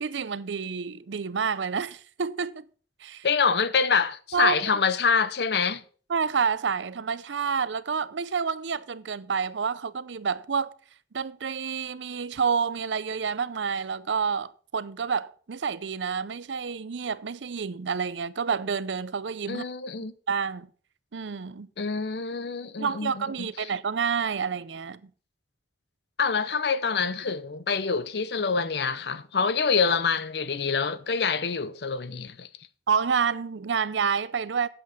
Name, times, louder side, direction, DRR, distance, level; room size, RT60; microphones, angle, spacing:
voice 1, 0.0-2.6 3.0-3.3 4.3-4.6 6.1-10.7 11.1-19.6 20.3-20.7 21.1-21.7 22.8-25.1 32.9-34.7, right 6 dB, 90° right, 0.6 m, -29 dB
voice 2, 3.2-5.8 19.5-20.1 21.8-23.5 26.2-32.5, left 5 dB, 65° left, 0.7 m, -26 dB
8.4 x 7.9 x 6.0 m
head